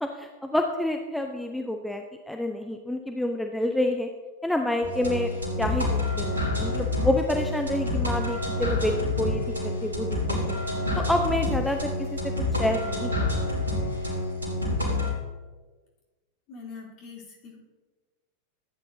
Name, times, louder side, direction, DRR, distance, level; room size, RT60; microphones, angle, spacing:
voice 1, 0.0-4.1 4.4-5.3 5.6-10.6 11.0-13.1, left 1 dB, ahead, 4 dB, 0.6 m, -28 dB
sound 1, 4.8-15.1, left 2 dB, 75° right, 3.1 m, -28 dB
voice 2, 16.5-17.6, left 5 dB, 40° left, -5 dB, 3.6 m, -43 dB
14.5 x 9.1 x 2.8 m, 1.3 s
figure-of-eight pair, 90°, 0 cm